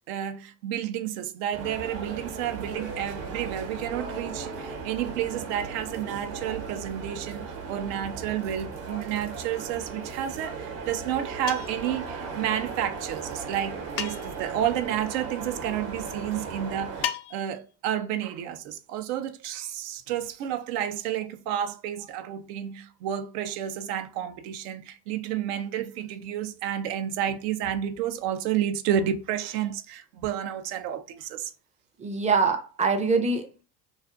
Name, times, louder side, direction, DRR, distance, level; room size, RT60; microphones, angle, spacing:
voice 1, 0.1-31.5, right 10 dB, 80° right, 0.6 m, -31 dB
sound 1, 1.5-17.1, right 4 dB, 60° right, 0.9 m, -37 dB
sound 2, 11.5-11.9 14.0-14.5 17.0-17.6, left 11 dB, 55° left, 0.5 m, -34 dB
voice 2, 32.0-33.6, right 4 dB, 15° right, 0.4 m, -24 dB
2.4 x 2.4 x 2.4 m
supercardioid pair, 85°, 48 cm